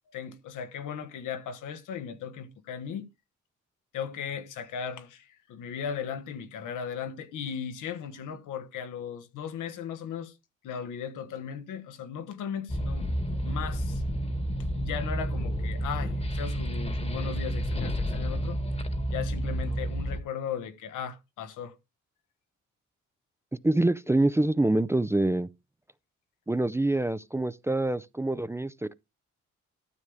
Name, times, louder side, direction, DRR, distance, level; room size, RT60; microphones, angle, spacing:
voice 1, 0.1-3.1 3.9-10.3 10.6-13.1 13.4-14.0 14.7-18.6 19.1-21.7, left 7 dB, 90° left, 1.5 m, -37 dB
sound 1, 12.7-20.2, equal, 20° left, 1.3 m, -30 dB
voice 2, 23.6-25.5 26.5-28.9, right 2 dB, 10° right, 0.5 m, -25 dB
12.5 x 7.1 x 3.5 m
cardioid pair, 90°, 30 cm